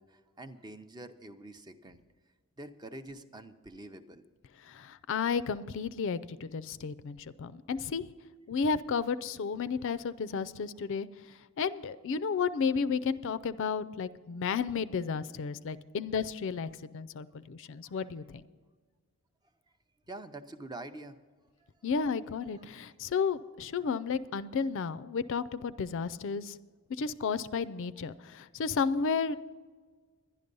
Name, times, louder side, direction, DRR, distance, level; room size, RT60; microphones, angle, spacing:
voice 1, 0.0-2.0 2.6-4.2 17.8-18.1 20.1-21.2 21.6-21.7 22.5-22.7, right 2 dB, 20° right, 9 dB, 0.5 m, -46 dB
voice 2, 4.6-8.1 8.5-11.1 11.6-18.2 21.8-26.6 27.0-29.4, left 5 dB, 60° left, 13 dB, 0.4 m, -32 dB
11.0 x 11.0 x 5.3 m, 1.5 s
head